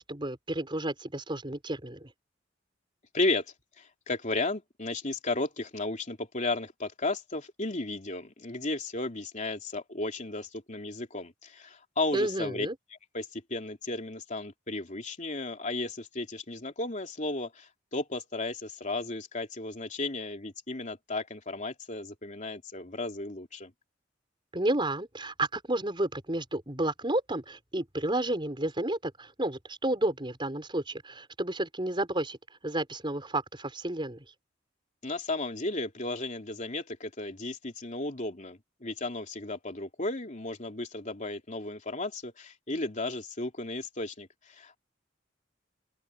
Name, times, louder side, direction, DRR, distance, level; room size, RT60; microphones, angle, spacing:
voice 1, 0.0-2.1 12.1-12.8 24.5-32.4 32.6-34.2, right 1 dB, 25° right, 5.3 m, -31 dB
voice 2, 3.1-3.4 3.8-12.7 13.1-23.7 35.0-44.8, left 2 dB, 40° left, 3.2 m, -34 dB
open air
head